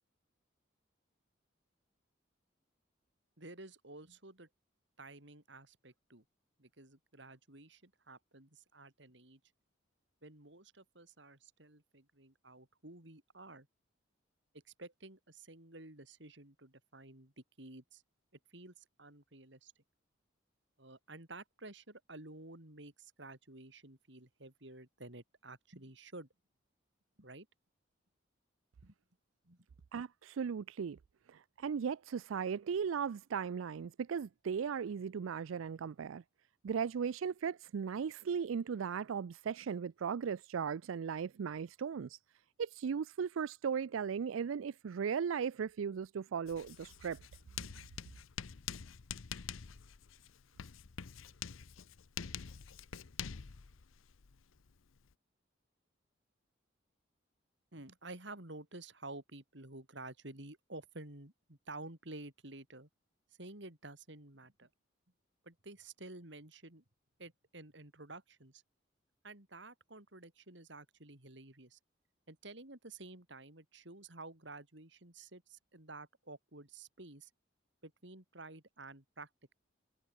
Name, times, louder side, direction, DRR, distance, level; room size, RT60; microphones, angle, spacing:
voice 1, 3.4-4.5 5.0-6.2 6.6-9.4 10.2-13.7 14.7-18.0 18.5-19.7 20.8-26.3 27.2-27.5 28.8-28.9 29.4-29.7 57.7-62.9 63.4-64.7 65.4-66.8 67.2-68.6 69.2-71.8 72.3-77.3 77.8-79.5, right 2 dB, 65° right, 3.6 m, -52 dB
voice 2, 29.9-31.0 31.3-36.2 36.6-42.2 42.6-47.2, right 6 dB, 90° right, 0.4 m, -37 dB
Writing, 46.5-55.1, left 7 dB, 90° left, 0.7 m, -46 dB
head